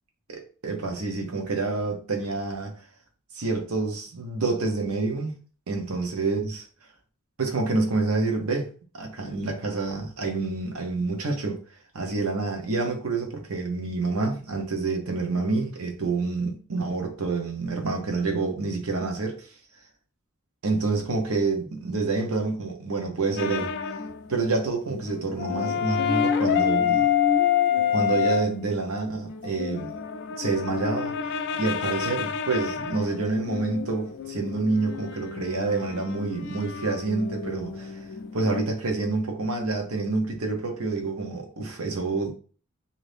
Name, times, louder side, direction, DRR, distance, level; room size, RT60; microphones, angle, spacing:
voice 1, 0.3-2.7 3.3-5.3 5.7-6.5 7.4-8.7 8.9-11.6 11.9-19.5 20.6-23.7 24.3-27.0 27.9-29.9 30.4-31.1 31.5-38.0 38.3-42.3, right 3 dB, 80° right, 0.8 m, -28 dB
sound 1, 23.4-24.2 24.5-24.6 24.9-28.5 29.3-38.6, left 8 dB, 55° left, 0.3 m, -27 dB
2.6 x 2.6 x 3.3 m
head